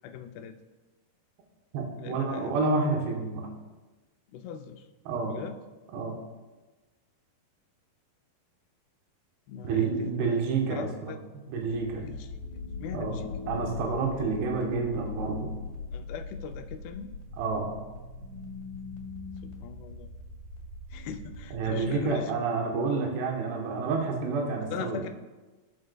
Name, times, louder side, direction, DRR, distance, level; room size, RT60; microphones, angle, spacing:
voice 1, 0.0-0.6 2.0-2.7 4.3-4.9 5.3-5.6 9.5-10.4 10.7-11.2 12.0-12.4 12.8-13.3 14.1-14.2 15.9-17.2 19.4-20.1 20.9-22.3 24.7-25.1, left 8 dB, 85° left, 7 dB, 2.7 m, -40 dB
voice 2, 1.7-3.5 5.1-5.3 5.9-6.2 9.6-10.9 11.5-12.0 12.9-13.2 13.5-15.5 17.4-17.7 21.5-25.0, right 4 dB, 85° right, 0 dB, 3.2 m, -29 dB
sound 1, 11.6-22.2, left 4 dB, 70° left, 3.5 m, -40 dB
17.5 x 6.6 x 2.3 m, 1.2 s
omnidirectional pair, 4.6 m